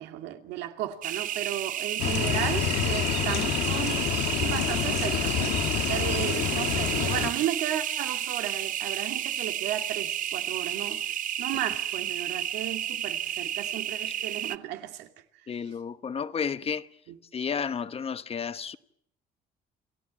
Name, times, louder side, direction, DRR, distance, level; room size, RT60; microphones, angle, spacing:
voice 1, 0.0-4.1 4.4-5.6 5.9-11.1 11.4-15.1 15.6-15.8 17.1-17.2, right 12 dB, 90° right, 2.5 m, -34 dB
sound 1, 1.0-14.6, right 10 dB, 50° right, 0.8 m, -31 dB
sound 2, 2.0-7.3, left 11 dB, 85° left, 1.7 m, -28 dB
voice 2, 15.5-16.9 17.3-18.8, left 6 dB, 35° left, 1.1 m, -32 dB
29.0 x 14.5 x 8.8 m
cardioid pair, 110°, 17 cm